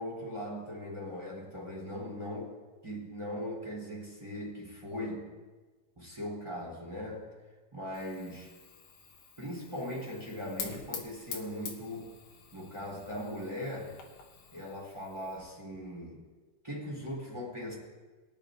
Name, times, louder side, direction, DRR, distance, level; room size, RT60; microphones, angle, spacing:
voice 1, 0.0-2.5 2.8-5.2 5.9-7.3 7.7-8.5 9.4-12.1 12.5-13.9 14.5-16.2 16.6-17.8, equal, 10° right, -4 dB, 2.7 m, -39 dB
Fire, 7.9-15.4, left 6 dB, 65° left, 2.0 m, -47 dB
23.0 x 10.0 x 2.6 m, 1.3 s
omnidirectional pair, 5.0 m